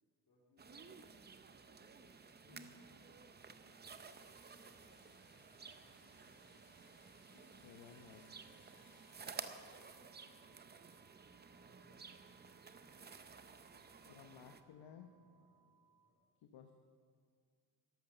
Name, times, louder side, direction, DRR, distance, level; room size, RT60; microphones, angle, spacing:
voice 1, 0.2-7.1 8.6-10.4 11.6-12.4 12.7-13.3 13.7-16.2, left 1 dB, 50° left, -8 dB, 3.1 m, -74 dB
sound 1, 0.6-14.6, right 5 dB, 25° right, 0.5 m, -54 dB
sound 2, 2.3-9.9, left 1 dB, 25° left, 2.5 m, -66 dB
voice 2, 7.6-8.3 14.1-15.1 16.5-16.7, left 8 dB, 90° left, 5 dB, 1.0 m, -56 dB
sound 3, 7.8-16.1, right 7 dB, 85° right, 1.0 m, -74 dB
12.5 x 11.0 x 6.8 m, 2.1 s
wide cardioid pair, 160°, 43 cm